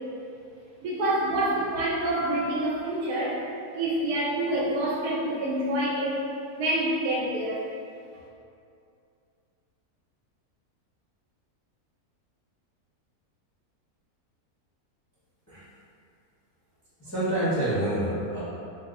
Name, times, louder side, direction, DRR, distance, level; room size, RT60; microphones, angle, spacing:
voice 1, 0.8-3.4 3.7-7.7, right 1 dB, 85° right, -5 dB, 1.2 m, -27 dB
voice 2, 17.0-18.4, right 1 dB, 25° left, -13 dB, 0.3 m, -27 dB
2.8 x 2.0 x 3.6 m, 2.6 s
omnidirectional pair, 1.6 m